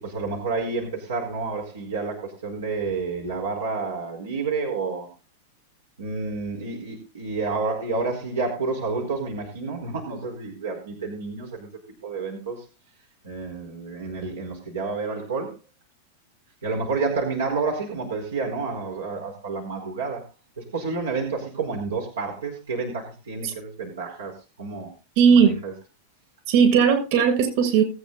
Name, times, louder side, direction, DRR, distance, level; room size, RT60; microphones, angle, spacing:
voice 1, 0.0-5.1 6.0-11.7 12.0-12.6 13.2-15.5 16.6-20.2 20.6-24.3 24.6-24.9 25.3-25.7, right 4 dB, 85° right, 0 dB, 4.6 m, -29 dB
voice 2, 25.2-25.5 26.5-27.8, right 7 dB, 55° right, 6 dB, 7.0 m, -17 dB
20.5 x 8.9 x 4.1 m, 0.32 s
hypercardioid pair, 115°, 0 cm